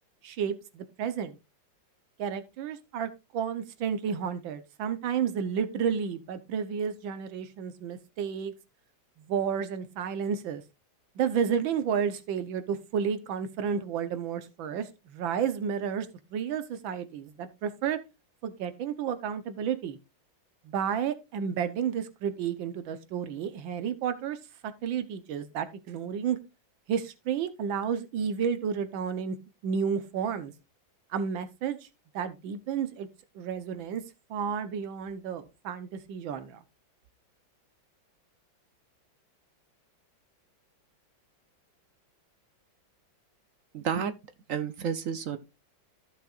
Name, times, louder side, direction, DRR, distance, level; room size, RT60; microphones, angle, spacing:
voice 1, 0.2-1.4 2.2-8.5 9.3-10.6 11.2-18.0 18.4-20.0 20.6-24.4 24.8-26.4 26.9-29.4 29.6-30.5 31.1-31.8 32.1-33.1 33.3-34.0 34.3-36.6, right 7 dB, 85° right, 1.7 m, -31 dB
voice 2, 43.7-44.2 44.5-45.4, right 7 dB, 60° right, 0.8 m, -30 dB
14.5 x 6.5 x 2.4 m
omnidirectional pair, 2.1 m